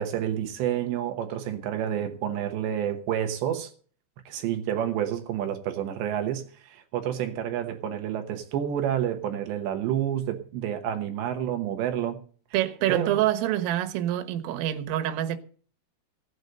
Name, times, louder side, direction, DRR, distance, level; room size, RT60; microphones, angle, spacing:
voice 1, 0.0-3.7 4.3-12.2 12.9-13.2, right 10 dB, 70° right, 3.1 m, -29 dB
voice 2, 12.5-15.4, right 13 dB, 90° right, 3.9 m, -26 dB
17.0 x 8.0 x 6.6 m
omnidirectional pair, 5.7 m